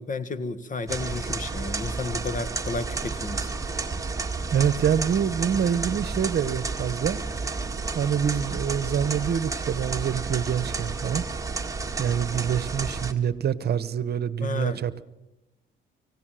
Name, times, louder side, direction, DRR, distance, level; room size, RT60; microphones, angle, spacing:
voice 1, 0.0-3.5 14.4-14.8, left 3 dB, 40° left, 1.6 m, -32 dB
sound 1, 0.9-13.1, right 4 dB, 15° right, 1.8 m, -31 dB
voice 2, 4.5-7.2 7.9-11.2 12.0-15.0, right 8 dB, 55° right, 1.0 m, -26 dB
25.0 x 17.0 x 7.7 m
cardioid pair, 90°, 20 cm